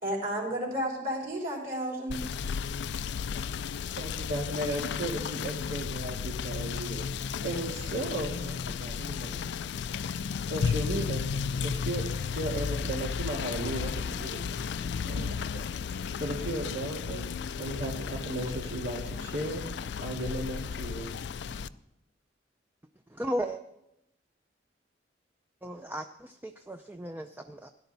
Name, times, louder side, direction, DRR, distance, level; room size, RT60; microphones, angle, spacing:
voice 1, 0.0-2.2, equal, 50° right, -2 dB, 3.9 m, -32 dB
Rain / Motor vehicle (road), 2.1-21.7, left 6 dB, 65° left, 0.3 m, -34 dB
voice 2, 4.0-9.9 10.4-11.3 11.6-17.2 17.6-21.1, right 1 dB, 80° right, -1 dB, 2.1 m, -36 dB
voice 3, 23.1-23.6 25.6-27.7, right 1 dB, 10° right, 6 dB, 0.4 m, -35 dB
17.0 x 10.5 x 4.0 m, 0.84 s
head